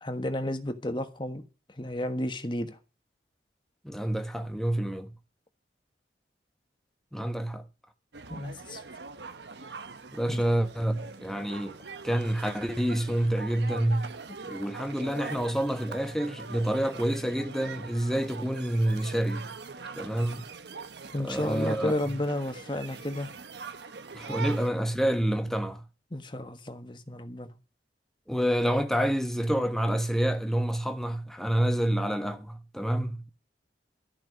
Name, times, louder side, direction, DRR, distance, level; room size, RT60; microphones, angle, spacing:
voice 1, 0.0-1.4 1.8-2.8 8.3-8.8 10.3-10.4 21.1-23.3 26.1-27.5, left 1 dB, 25° left, 1.4 m, -32 dB
voice 2, 3.8-5.1 7.1-7.6 10.1-11.8 12.0-14.1 14.5-19.5 20.0-20.4 21.2-22.0 24.1-25.8 28.3-33.3, right 1 dB, ahead, 1.1 m, -28 dB
sound 1, 8.1-24.7, right 4 dB, 80° right, 1.0 m, -43 dB
14.0 x 5.9 x 9.3 m
head